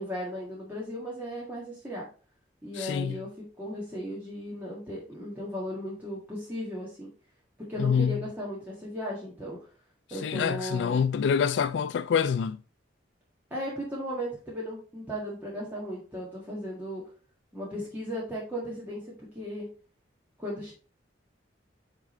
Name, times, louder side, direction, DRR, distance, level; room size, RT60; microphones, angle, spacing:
voice 1, 0.0-2.1 2.6-7.1 7.7-9.6 10.1-11.0 13.5-17.0 17.5-19.7 20.4-20.7, equal, 10° right, 1.6 m, -36 dB
voice 2, 2.7-3.2 7.8-8.2 10.1-12.6, left 7 dB, 75° left, 0.3 m, -26 dB
8.1 x 3.7 x 4.2 m
head